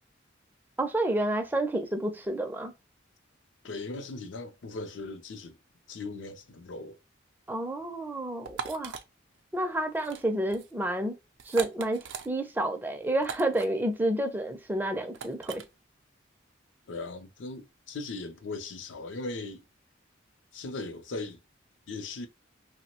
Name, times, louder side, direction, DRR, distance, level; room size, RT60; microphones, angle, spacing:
voice 1, 0.8-2.7 7.5-9.0 9.5-11.2 11.5-15.6, right 1 dB, 10° right, 0.4 m, -29 dB
voice 2, 3.6-5.6 5.9-7.0 16.9-19.6 20.5-21.4 21.9-22.3, left 3 dB, 75° left, 0.5 m, -38 dB
sound 1, 8.4-9.0 9.9-10.2 10.5-10.7 11.4-12.3 13.2-13.7 15.1-15.6, right 7 dB, 75° right, 0.4 m, -39 dB
2.9 x 2.1 x 2.8 m
head